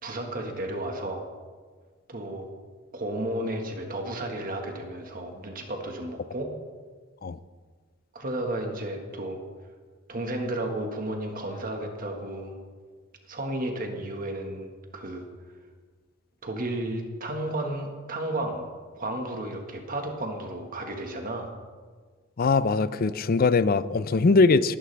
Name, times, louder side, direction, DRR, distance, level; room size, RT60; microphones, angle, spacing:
voice 1, 0.0-1.2 2.1-2.5 2.9-6.5 8.1-9.4 10.1-12.6 13.3-15.3 16.4-18.6 19.0-21.5, right 1 dB, 40° right, 3 dB, 1.6 m, -33 dB
voice 2, 22.4-24.8, left 3 dB, 45° left, 15 dB, 0.5 m, -21 dB
20.0 x 11.0 x 3.4 m, 1.5 s
head